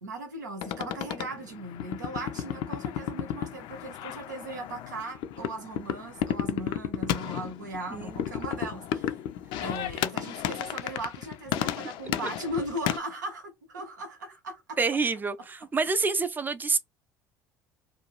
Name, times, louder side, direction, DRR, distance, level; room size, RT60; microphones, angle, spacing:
voice 1, 0.0-9.1 9.6-14.8, right 1 dB, 85° right, 0.6 m, -38 dB
sound 1, 0.6-13.0, left 11 dB, 55° left, 0.4 m, -33 dB
voice 2, 14.8-16.8, right 4 dB, 20° right, 0.5 m, -27 dB
2.5 x 2.3 x 3.0 m
figure-of-eight pair, 60°, 10 cm